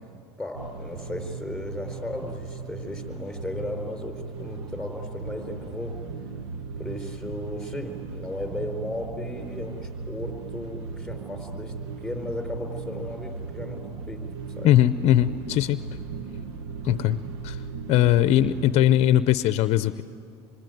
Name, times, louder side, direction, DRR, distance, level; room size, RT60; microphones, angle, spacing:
voice 1, 0.4-6.0 6.8-14.2 14.5-14.7, left 1 dB, ahead, 4 dB, 4.7 m, -35 dB
sound 1, 0.5-18.9, right 4 dB, 80° right, 1.2 m, -37 dB
voice 2, 14.6-15.8 16.8-17.2 17.4-17.6 17.9-20.0, left 13 dB, 50° left, 13 dB, 0.7 m, -20 dB
26.5 x 23.5 x 9.4 m, 2.4 s
supercardioid pair, 110°, 14 cm